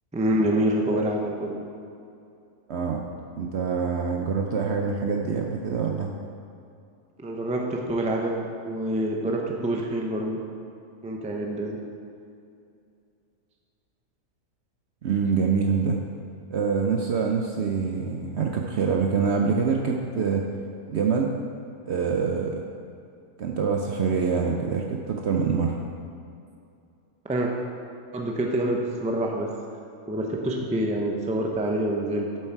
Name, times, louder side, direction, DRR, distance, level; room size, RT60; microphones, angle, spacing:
voice 1, 0.1-1.5 7.2-10.4 11.0-11.8 27.3-27.5 28.1-29.5 30.1-32.3, right 1 dB, 10° right, 0 dB, 0.5 m, -26 dB
voice 2, 2.7-3.0 3.4-6.1 15.0-16.0 16.5-20.4 20.9-21.3 21.9-22.6 23.4-25.8, right 5 dB, 60° right, 1 dB, 0.7 m, -25 dB
7.8 x 7.7 x 4.6 m, 2.5 s
omnidirectional pair, 1.6 m